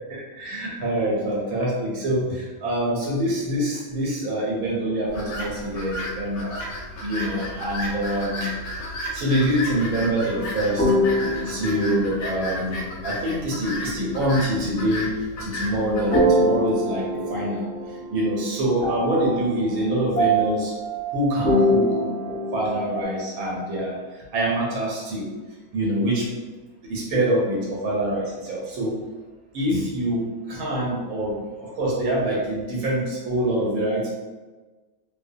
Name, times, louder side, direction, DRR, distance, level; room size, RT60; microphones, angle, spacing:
voice 1, 0.1-6.6 7.0-8.5 9.1-10.8 11.4-17.0 17.3-17.7 18.1-20.7 21.1-21.8 22.5-24.0 24.3-25.3 25.7-26.3 26.9-28.9 29.5-34.1, right 1 dB, 85° right, -5 dB, 1.2 m, -25 dB
sound 1, 5.1-16.2, left 1 dB, 75° left, 1.0 m, -33 dB
sound 2, 10.8-13.0 16.1-18.4 18.8-23.0, equal, 15° left, 0.4 m, -24 dB
2.6 x 2.1 x 2.5 m, 1.3 s
omnidirectional pair, 1.5 m